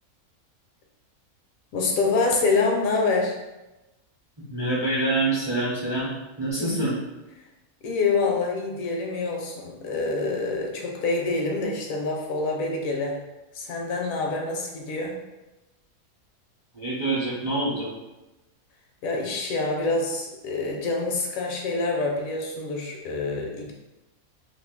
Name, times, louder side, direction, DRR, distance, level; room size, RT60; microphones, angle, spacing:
voice 1, 1.7-3.4 6.6-6.8 7.8-13.2 13.5-15.2 19.0-23.7, left 3 dB, 75° left, 0 dB, 1.0 m, -26 dB
voice 2, 4.5-6.9 16.7-17.9, right 2 dB, 30° right, -7 dB, 0.5 m, -26 dB
2.7 x 2.4 x 3.7 m, 1.0 s
omnidirectional pair, 1.5 m